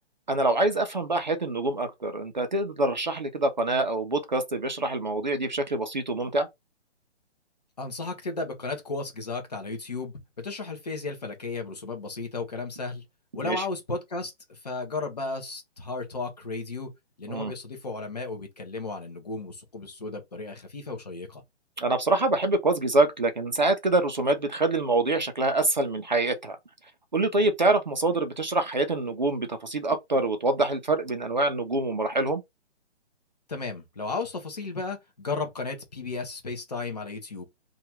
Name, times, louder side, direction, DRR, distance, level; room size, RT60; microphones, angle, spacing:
voice 1, 0.3-6.5 13.4-13.6 17.3-17.5 21.8-26.6 27.1-32.4, right 2 dB, 40° right, 0.5 m, -25 dB
voice 2, 7.8-13.0 13.3-16.9 17.2-21.4 33.5-37.4, left 3 dB, 35° left, 0.8 m, -34 dB
2.8 x 2.3 x 4.2 m
hypercardioid pair, 180°, 35 cm